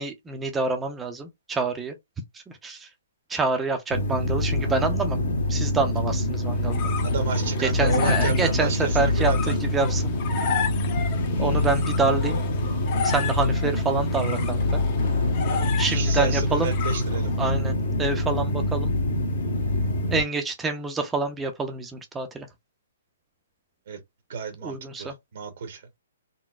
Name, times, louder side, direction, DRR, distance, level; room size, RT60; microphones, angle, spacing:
voice 1, 0.0-1.9 2.6-2.9 3.3-5.2 5.5-6.9 7.6-10.1 11.4-12.4 13.0-14.8 15.8-16.7 17.4-17.7 18.0-18.9 20.1-22.5 24.6-25.1, right 4 dB, 10° right, 0.5 m, -27 dB
sound 1, 3.9-20.2, left 1 dB, 60° left, 1.1 m, -25 dB
sound 2, 6.3-17.5, left 7 dB, 35° left, 0.7 m, -34 dB
voice 2, 7.0-9.6 15.5-17.4 23.9-24.0 24.3-25.9, right 4 dB, 60° right, 0.8 m, -31 dB
3.9 x 2.0 x 2.3 m
hypercardioid pair, 155°, 0 cm